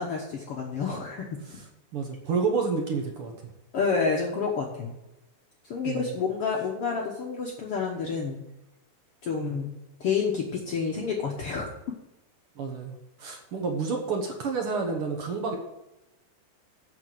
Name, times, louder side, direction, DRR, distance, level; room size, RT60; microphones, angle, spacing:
voice 1, 0.0-1.6 3.7-4.9 5.6-8.4 9.2-9.7 10.0-11.7, left 5 dB, 75° left, -1 dB, 1.3 m, -29 dB
voice 2, 1.9-3.3 5.8-6.1 9.4-9.5 12.6-15.6, right 4 dB, 65° right, 2 dB, 1.3 m, -29 dB
8.2 x 6.7 x 7.7 m, 0.94 s
omnidirectional pair, 4.4 m